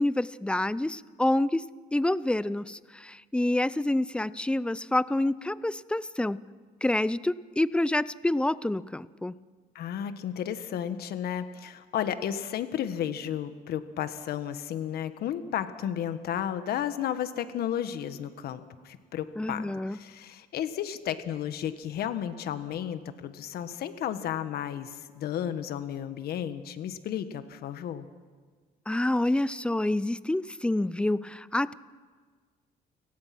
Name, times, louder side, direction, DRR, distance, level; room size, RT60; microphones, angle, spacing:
voice 1, 0.0-1.6 1.9-6.4 6.8-9.3 19.4-20.0 28.9-31.7, left 1 dB, 5° left, 18 dB, 0.5 m, -27 dB
voice 2, 9.7-28.0, left 10 dB, 65° left, 11 dB, 1.5 m, -33 dB
30.0 x 18.0 x 6.1 m, 1.5 s
cardioid pair, 110°, 17 cm